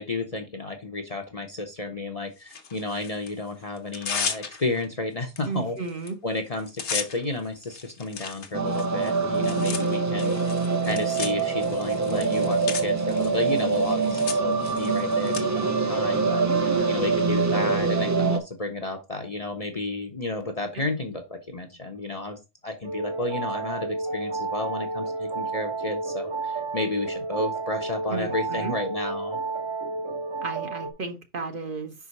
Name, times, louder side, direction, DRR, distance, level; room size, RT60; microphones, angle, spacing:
voice 1, 0.0-5.8 6.2-10.3 10.8-16.5 16.9-29.4, left 2 dB, 35° left, 0.8 m, -32 dB
Tearing, 2.5-3.3 3.8-4.9 5.4-5.5 5.8-6.1 6.4-15.4, left 6 dB, 65° left, 1.2 m, -35 dB
voice 2, 5.4-6.2 16.4-17.0 28.1-28.7 30.4-31.9, right 4 dB, 45° right, 1.0 m, -33 dB
sound 1, 8.5-18.4, right 4 dB, 25° right, 0.4 m, -24 dB
sound 2, 22.8-30.9, right 3 dB, 80° right, 2.0 m, -31 dB
5.5 x 4.9 x 4.1 m
omnidirectional pair, 1.3 m